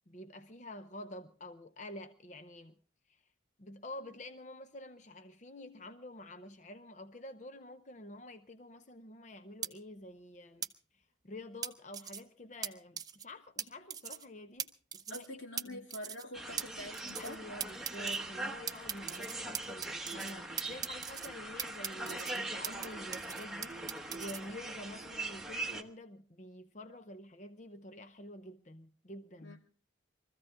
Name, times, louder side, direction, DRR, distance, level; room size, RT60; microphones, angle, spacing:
voice 1, 0.1-2.8 3.1-3.2 3.6-10.7 10.9-15.3 15.7-15.8 17.2-29.6, left 1 dB, 40° left, 0.7 m, -48 dB
sound 1, 9.6-9.7 10.6-10.7 11.6-12.2 12.6-12.7 13.0-13.2 13.6-13.7 13.9-14.2 14.6-14.7 14.9-15.3 15.6-15.7 15.9-16.2 16.6-16.7 16.9-17.4 17.6-18.2 18.7-20.3 20.6-21.3 21.6-22.9 23.1-24.4, right 8 dB, 20° right, 0.7 m, -39 dB
voice 2, 15.1-17.4 29.4-29.6, left 1 dB, 80° left, 2.6 m, -46 dB
sound 2, 16.3-25.8, right 2 dB, ahead, 1.1 m, -41 dB
24.0 x 14.5 x 3.6 m
head